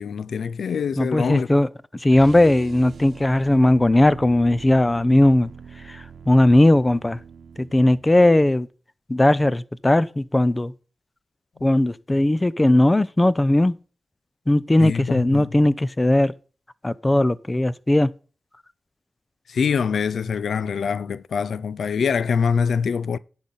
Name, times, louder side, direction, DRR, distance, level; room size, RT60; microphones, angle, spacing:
voice 1, 0.0-1.5 14.8-15.5 19.5-23.2, left 6 dB, 80° left, 0.4 m, -24 dB
voice 2, 1.0-1.7 1.9-5.5 5.9-7.2 7.6-8.7 9.1-10.7 11.6-13.8 14.5-16.3 16.8-18.1, left 1 dB, 20° left, 0.6 m, -18 dB
sound 1, 2.1-8.2, right 6 dB, 75° right, 0.9 m, -42 dB
10.5 x 4.0 x 7.2 m
cardioid pair, 65°, 0 cm